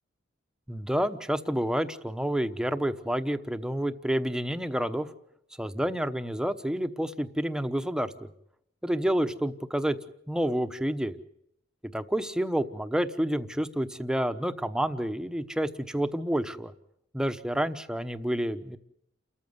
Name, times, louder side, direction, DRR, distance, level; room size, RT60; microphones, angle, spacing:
voice 1, 0.7-5.1 5.6-8.3 8.8-10.0 10.3-11.2 11.8-16.7 17.1-18.8, right 1 dB, 5° right, 9 dB, 1.0 m, -29 dB
29.0 x 14.0 x 8.0 m, 0.75 s
head